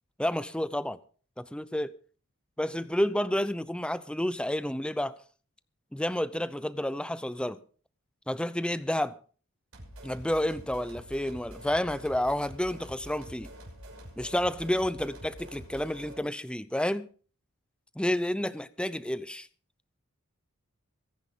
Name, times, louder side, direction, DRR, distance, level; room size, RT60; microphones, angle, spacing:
voice 1, 0.2-1.0 1.4-1.9 2.6-5.2 5.9-7.6 8.3-9.2 10.0-13.5 14.2-17.1 18.0-19.5, left 1 dB, 5° left, 0.6 m, -30 dB
sound 1, 9.7-16.2, equal, 65° right, 6.3 m, -46 dB
23.0 x 10.5 x 3.8 m
head